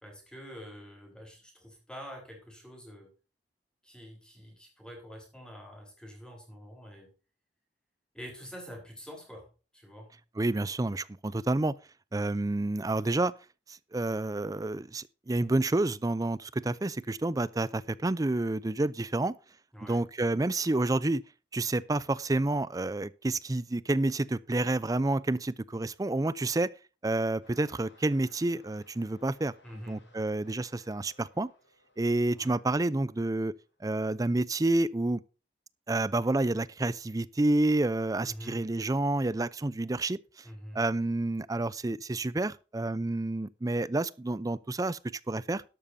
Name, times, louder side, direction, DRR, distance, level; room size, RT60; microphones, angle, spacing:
voice 1, 0.0-3.1 3.8-7.1 8.1-10.1 19.7-20.0 29.6-30.1 32.4-32.6 38.2-38.6 40.4-40.8, equal, 5° left, 4.5 m, -46 dB
voice 2, 10.4-11.7 12.1-13.3 13.7-19.3 19.8-21.2 21.5-26.7 27.0-29.5 29.9-31.5 32.0-33.5 33.8-35.2 35.9-40.2 40.7-45.0 45.3-45.6, right 2 dB, 20° right, 0.5 m, -29 dB
sound 1, 27.4-33.8 34.5-34.6, left 3 dB, 80° left, 6.9 m, -62 dB
12.5 x 11.5 x 2.7 m
head